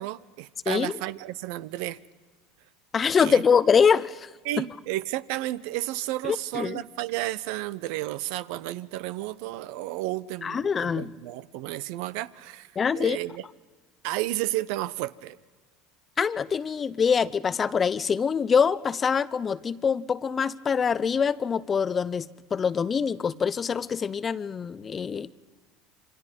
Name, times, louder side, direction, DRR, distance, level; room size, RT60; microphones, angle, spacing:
voice 1, 0.0-2.0 3.2-3.4 4.4-12.7 12.9-13.4 14.0-15.4, right 16 dB, 70° right, 0.7 m, -32 dB
voice 2, 2.9-4.3 6.2-6.8 10.4-11.1 12.8-13.2 16.2-22.3 22.5-25.3, left 6 dB, 30° left, 0.7 m, -24 dB
27.5 x 24.5 x 5.3 m
supercardioid pair, 95°, 0 cm